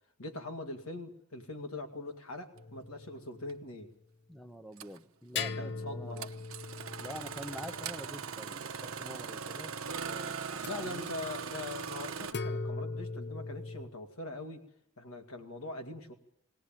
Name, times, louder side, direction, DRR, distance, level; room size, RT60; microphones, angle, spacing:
voice 1, 0.2-3.9 5.6-6.3 10.6-14.6 15.0-16.1, left 2 dB, 80° left, 5 dB, 2.3 m, -42 dB
sound 1, 2.5-3.7 5.3-9.1 10.6-10.7 12.3-13.9, left 4 dB, 50° left, 0.8 m, -40 dB
Engine starting, 3.5-3.6 4.8-5.0 6.2-12.3, right 6 dB, 70° right, 0.9 m, -40 dB
voice 2, 4.3-6.3 7.0-9.7 10.1-11.1, equal, ahead, 8 dB, 1.0 m, -46 dB
20.0 x 18.5 x 9.0 m, 0.71 s
head